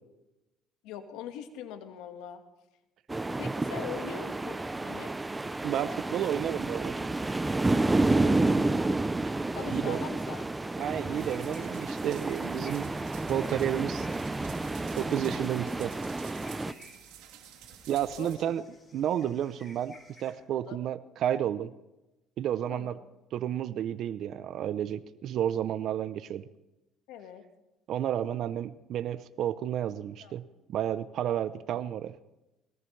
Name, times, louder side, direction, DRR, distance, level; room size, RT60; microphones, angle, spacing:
voice 1, 0.8-2.4 3.4-5.1 8.1-8.6 9.5-10.5 16.4-16.8 17.6-17.8 18.2-18.3 20.5-20.8 22.7-23.0 27.1-27.4 30.2-30.3 31.7-31.8, left 9 dB, 80° left, 7 dB, 1.6 m, -42 dB
sound 1, 3.1-16.7, right 2 dB, 15° right, 0.6 m, -30 dB
voice 2, 5.6-6.9 9.7-10.0 10.8-12.9 13.3-14.1 15.0-15.9 17.9-18.6 18.9-21.7 22.4-23.0 23.3-26.4 27.9-32.1, right 10 dB, 60° right, 12 dB, 0.6 m, -31 dB
sound 2, 9.9-20.3, left 2 dB, 20° left, 4.8 m, -57 dB
sound 3, 11.1-18.4, right 11 dB, 85° right, 3.1 m, -51 dB
20.5 x 18.5 x 3.3 m, 0.97 s
cardioid pair, 105°, 0 cm